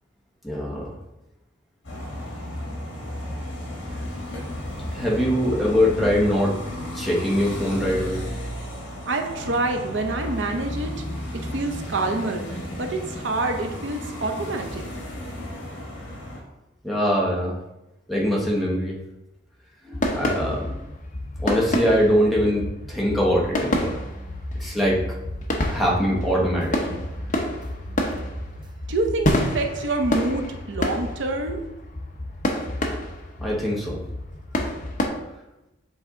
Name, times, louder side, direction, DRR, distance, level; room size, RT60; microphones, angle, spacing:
voice 1, 0.4-1.0 3.7-4.1 4.9-6.6 6.9-8.5 16.8-17.6 18.1-19.0 19.8-20.8 21.4-24.0 24.5-25.0 25.7-27.0 33.4-34.0, equal, ahead, -5 dB, 1.1 m, -23 dB
sound 1, 1.8-16.4, left 1 dB, 65° left, 1.8 m, -33 dB
voice 2, 9.1-11.0 11.3-14.8 28.9-31.6, right 2 dB, 70° right, 4 dB, 0.7 m, -27 dB
sound 2, 19.9-35.1, left 1 dB, 40° left, 0.8 m, -29 dB
sound 3, 23.8-28.9, right 1 dB, 25° right, 0.3 m, -39 dB
7.9 x 3.5 x 3.7 m, 0.94 s
head